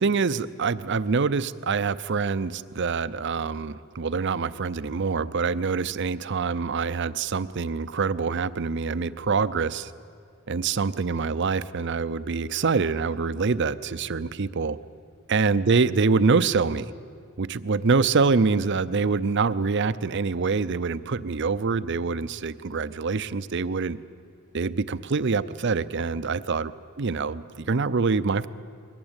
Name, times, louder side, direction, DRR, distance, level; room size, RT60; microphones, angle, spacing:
voice 1, 0.0-9.9 10.5-14.8 15.3-16.9 17.4-24.0 24.5-26.7 27.0-28.5, right 4 dB, 55° right, 15 dB, 0.6 m, -25 dB
22.0 x 18.0 x 8.9 m, 2.3 s
head